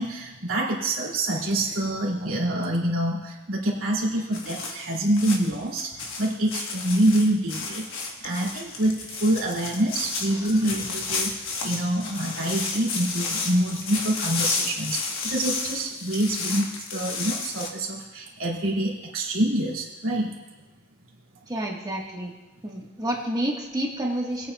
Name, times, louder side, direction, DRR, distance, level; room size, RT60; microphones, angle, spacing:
voice 1, 0.0-20.3, right 1 dB, 75° right, -3 dB, 2.5 m, -26 dB
sound 1, 4.3-17.7, left 4 dB, 70° left, 1.2 m, -32 dB
voice 2, 10.3-10.8 21.5-22.3 22.6-24.5, right 1 dB, 20° right, -1 dB, 1.4 m, -30 dB
20.5 x 8.6 x 2.3 m, 1.1 s
head